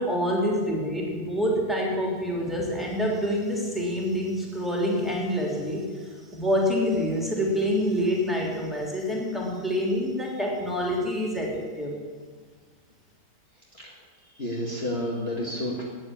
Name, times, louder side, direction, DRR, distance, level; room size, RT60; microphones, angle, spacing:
voice 1, 0.0-11.9, equal, ahead, -2 dB, 3.1 m, -27 dB
voice 2, 14.3-15.8, left 1 dB, 35° left, -4 dB, 2.1 m, -30 dB
13.0 x 9.1 x 8.7 m, 1.5 s
omnidirectional pair, 1.8 m